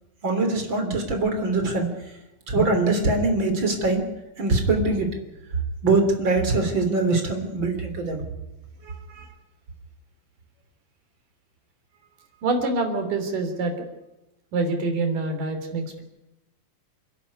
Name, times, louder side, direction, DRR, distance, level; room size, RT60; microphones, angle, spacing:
voice 1, 0.2-1.9 2.5-4.1 4.4-5.2 5.8-8.2, right 3 dB, 35° right, 5 dB, 4.0 m, -22 dB
voice 2, 8.8-9.3 12.4-13.7 14.5-16.0, right 3 dB, 70° right, 5 dB, 5.0 m, -26 dB
28.5 x 11.5 x 9.7 m, 0.97 s
omnidirectional pair, 3.9 m